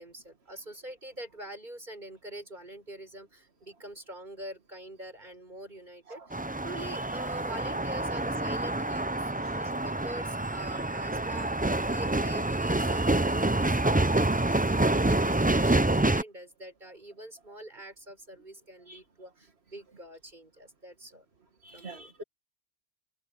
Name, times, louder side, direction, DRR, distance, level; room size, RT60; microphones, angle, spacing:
voice 1, 0.0-6.2 6.6-21.3 21.7-22.1, right 1 dB, 50° right, 7.3 m, -44 dB
sound 1, 6.3-16.2, right 2 dB, 10° right, 0.5 m, -27 dB
voice 2, 21.6-22.2, right 2 dB, 80° right, 2.1 m, -45 dB
open air
omnidirectional pair, 1.1 m